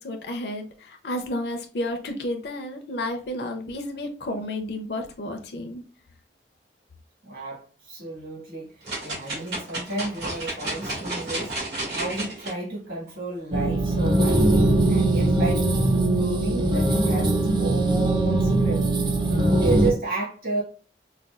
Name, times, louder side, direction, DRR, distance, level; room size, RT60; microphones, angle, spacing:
voice 1, 0.0-5.8, left 1 dB, 70° left, 0.5 m, -31 dB
voice 2, 7.2-11.5 11.9-14.5 14.9-18.9 19.3-20.6, right 3 dB, 55° right, 1.6 m, -32 dB
sound 1, 8.8-12.5 13.1-13.2, right 2 dB, 75° right, 1.7 m, -32 dB
sound 2, 13.5-19.9, right 2 dB, 25° right, 0.4 m, -21 dB
4.2 x 2.3 x 2.3 m
head